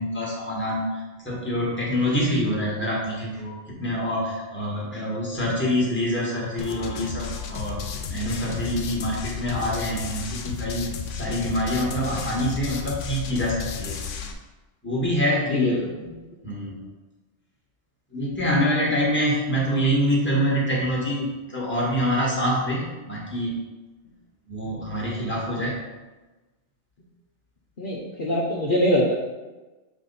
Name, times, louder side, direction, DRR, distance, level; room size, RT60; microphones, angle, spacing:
voice 1, 0.0-7.8 8.1-10.8 11.1-14.0 14.8-15.8 16.4-16.8 18.1-23.6 24.5-25.8, equal, 10° left, -5 dB, 1.5 m, -25 dB
sound 1, 6.6-14.3, left 6 dB, 85° left, 1.0 m, -33 dB
voice 2, 15.5-15.9 27.8-29.1, left 1 dB, 50° left, -5 dB, 0.9 m, -23 dB
7.2 x 3.5 x 4.1 m, 1.2 s
omnidirectional pair, 1.2 m